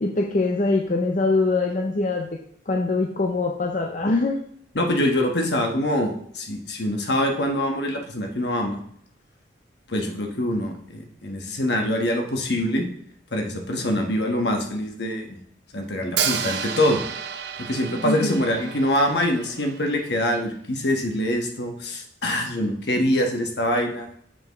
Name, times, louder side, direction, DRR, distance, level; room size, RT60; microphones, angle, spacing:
voice 1, 0.0-2.4 2.7-4.4 18.0-18.4, left 3 dB, 40° left, 2 dB, 0.6 m, -23 dB
voice 2, 4.7-8.8 9.9-12.9 13.3-15.4 15.7-17.0 17.6-24.1, left 1 dB, 65° left, 2 dB, 1.3 m, -24 dB
Hi-hat, 16.2-20.1, right 7 dB, 65° right, 0.6 m, -31 dB
7.0 x 5.7 x 3.0 m, 0.66 s
head